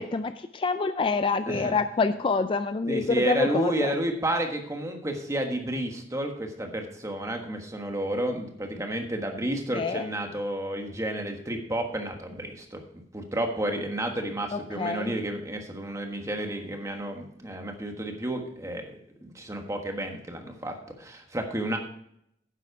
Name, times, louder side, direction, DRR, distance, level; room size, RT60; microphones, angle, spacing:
voice 1, 0.0-3.9 9.7-10.1 14.5-15.1, left 4 dB, 30° left, 10 dB, 0.3 m, -27 dB
voice 2, 1.4-1.8 2.9-21.8, right 1 dB, 15° right, 3 dB, 1.4 m, -31 dB
10.0 x 7.5 x 4.7 m, 0.73 s
head